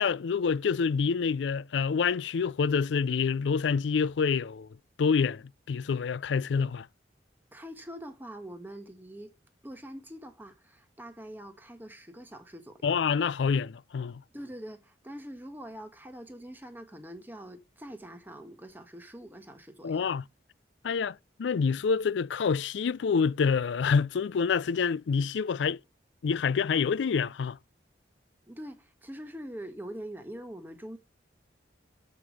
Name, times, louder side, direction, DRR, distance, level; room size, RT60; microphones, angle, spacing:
voice 1, 0.0-4.7 5.0-6.9 12.8-14.2 19.8-20.2 20.8-25.8 26.2-27.6, left 5 dB, 85° left, 0.4 m, -27 dB
voice 2, 7.5-9.3 9.6-13.0 14.3-20.2 28.5-31.0, equal, 10° right, 1.3 m, -44 dB
7.6 x 5.2 x 6.2 m
head